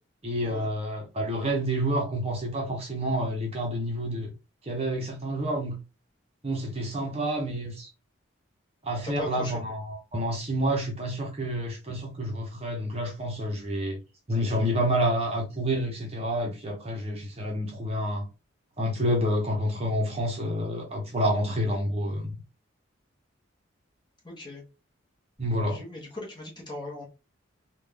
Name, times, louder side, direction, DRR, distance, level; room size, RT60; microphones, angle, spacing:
voice 1, 0.2-4.3 4.7-5.8 6.4-7.9 8.8-14.0 14.3-18.3 18.8-22.4 25.4-25.8, equal, 30° right, 0.8 m, -28 dB
voice 2, 9.0-9.6 24.2-24.6 25.7-27.1, left 2 dB, 20° left, 1.1 m, -38 dB
3.7 x 2.4 x 3.4 m
head